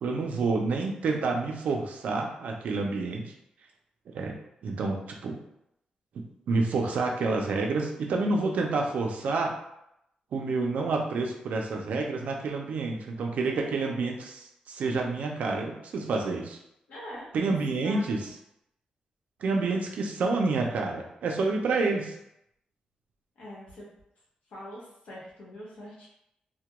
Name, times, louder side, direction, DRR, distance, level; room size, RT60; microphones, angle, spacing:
voice 1, 0.0-3.3 4.1-5.4 6.1-9.5 10.3-16.6 17.3-18.3 19.4-22.1, right 3 dB, 70° right, 1 dB, 0.4 m, -28 dB
voice 2, 16.9-18.3 23.4-23.9 24.5-26.1, equal, 85° left, -5 dB, 1.0 m, -43 dB
2.2 x 2.2 x 2.9 m, 0.80 s
wide cardioid pair, 170°, 3 cm